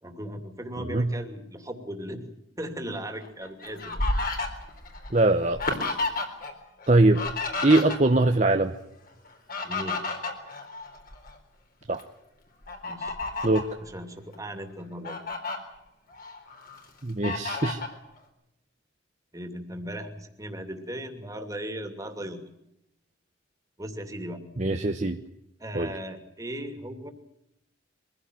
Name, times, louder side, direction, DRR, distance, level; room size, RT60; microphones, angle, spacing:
voice 1, 0.0-2.3 2.6-4.0 9.6-10.0 12.8-13.2 13.8-15.2 19.3-22.4 23.8-24.4 25.6-27.1, equal, 20° right, 6 dB, 2.7 m, -37 dB
Fowl, 3.2-6.5 6.8-8.3 9.3-11.4 11.8-12.0 12.7-13.7 14.3-14.4 14.8-15.6 16.1-16.8 17.2-18.0, left 2 dB, 50° left, 4.1 m, -32 dB
voice 2, 5.1-5.6 5.9-6.0 6.9-7.2 7.6-8.7 11.9-12.0 13.4-13.7 17.0-17.8 24.6-25.2 25.7-25.9, right 2 dB, 40° right, 5 dB, 1.0 m, -22 dB
23.5 x 16.0 x 9.3 m, 0.86 s
head